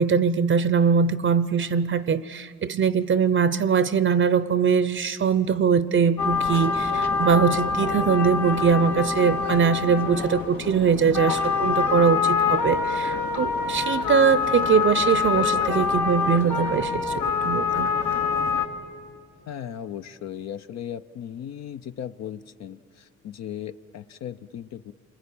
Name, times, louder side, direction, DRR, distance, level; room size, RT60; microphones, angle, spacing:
voice 1, 0.0-17.9, right 6 dB, 40° right, 15 dB, 0.6 m, -22 dB
sound 1, 6.2-18.7, left 5 dB, 85° left, 1.9 m, -25 dB
voice 2, 19.5-24.9, left 9 dB, 60° left, 10 dB, 0.6 m, -37 dB
29.0 x 22.0 x 8.6 m, 2.4 s
cardioid pair, 90°, 30 cm